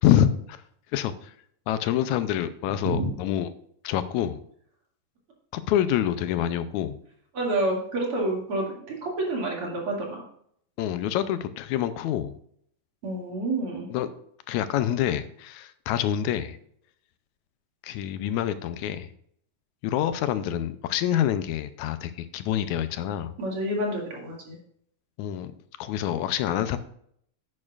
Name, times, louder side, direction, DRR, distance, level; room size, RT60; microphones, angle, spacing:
voice 1, 0.0-0.6 0.9-1.3 1.7-3.5 3.8-4.4 5.5-7.0 10.8-12.4 13.9-14.1 14.5-16.6 17.8-19.1 19.8-23.3 25.2-25.5 25.8-26.8, left 11 dB, 80° left, 12 dB, 1.9 m, -26 dB
voice 2, 7.3-8.7 9.0-10.2 13.0-13.9 23.4-24.6, right 1 dB, 50° right, -1 dB, 3.0 m, -28 dB
11.0 x 8.6 x 2.4 m, 0.67 s
omnidirectional pair, 3.4 m